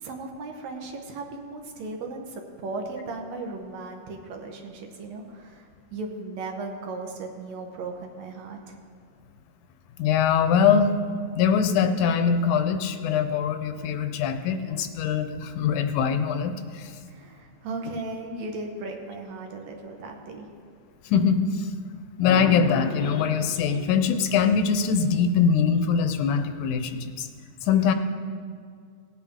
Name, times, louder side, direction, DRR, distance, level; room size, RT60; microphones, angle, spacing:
voice 1, 0.0-8.8 17.1-20.5, right 3 dB, 70° right, 2 dB, 2.1 m, -36 dB
voice 2, 10.0-10.9 11.4-16.9 21.1-21.7 22.2-27.3 27.6-27.9, left 6 dB, 90° left, 8 dB, 2.2 m, -23 dB
18.0 x 8.6 x 3.6 m, 2.2 s
omnidirectional pair, 3.5 m